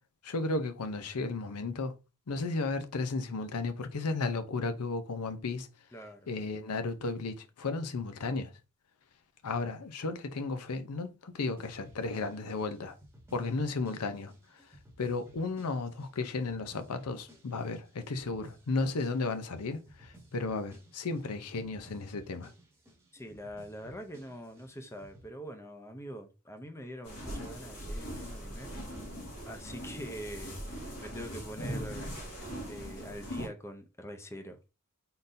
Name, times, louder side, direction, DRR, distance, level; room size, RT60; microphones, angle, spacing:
voice 1, 0.2-1.9 2.3-5.7 6.3-8.5 9.4-13.0 13.3-14.3 15.0-22.5, left 3 dB, 90° left, 0.6 m, -34 dB
voice 2, 5.9-6.3 23.1-28.7 29.5-32.1 32.7-34.6, equal, 10° left, 0.5 m, -44 dB
sound 1, 11.6-25.3, equal, 10° right, 1.0 m, -57 dB
sound 2, 27.0-33.5, equal, 70° left, 1.8 m, -40 dB
4.0 x 3.8 x 2.6 m
head